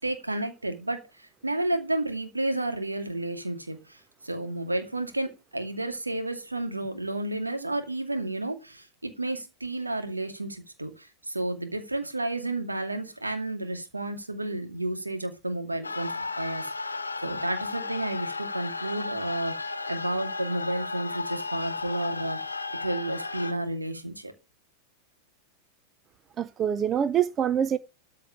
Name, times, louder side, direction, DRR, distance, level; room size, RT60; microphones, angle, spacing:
voice 1, 0.0-24.3, right 1 dB, 85° right, 2.3 m, -32 dB
sound 1, 15.8-23.5, left 3 dB, 80° left, 1.1 m, -34 dB
voice 2, 26.4-27.8, right 9 dB, 25° right, 0.7 m, -25 dB
13.5 x 4.7 x 8.7 m
figure-of-eight pair, 90°, 0 cm